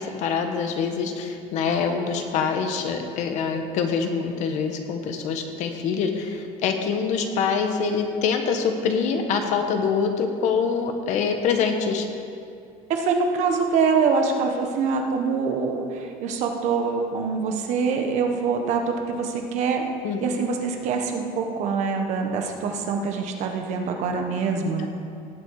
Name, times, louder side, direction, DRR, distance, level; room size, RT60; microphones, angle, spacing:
voice 1, 0.0-12.1 20.0-20.2, left 5 dB, 55° left, 5 dB, 1.3 m, -25 dB
voice 2, 12.9-19.8 20.2-24.9, right 5 dB, 55° right, 3 dB, 1.4 m, -24 dB
18.0 x 7.7 x 4.8 m, 2.4 s
cardioid pair, 165°, 14 cm